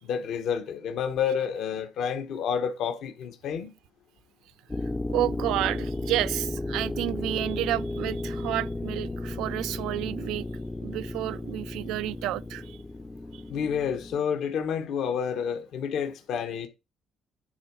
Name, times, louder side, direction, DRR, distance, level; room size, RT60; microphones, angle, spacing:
voice 1, 0.0-3.7 13.5-16.7, left 7 dB, 70° left, 1.4 m, -29 dB
sound 1, 4.7-14.2, left 2 dB, 15° left, 0.5 m, -34 dB
voice 2, 5.1-10.4 10.8-12.6, right 14 dB, 90° right, 0.4 m, -30 dB
10.5 x 3.8 x 6.1 m
cardioid pair, 120°, 0 cm